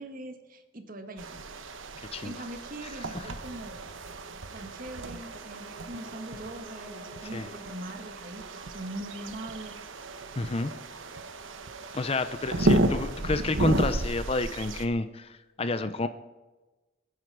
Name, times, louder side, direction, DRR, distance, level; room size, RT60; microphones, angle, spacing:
voice 1, 0.0-1.4 2.2-3.8 4.5-9.9, right 1 dB, 45° right, 7 dB, 1.5 m, -42 dB
sound 1, 1.2-14.9, right 1 dB, 70° right, 1.1 m, -33 dB
sound 2, 4.7-9.8, equal, 20° right, 2.5 m, -51 dB
voice 2, 10.4-10.7 11.9-16.1, left 3 dB, 30° left, 11 dB, 0.5 m, -29 dB
22.0 x 10.0 x 4.7 m, 1.2 s
head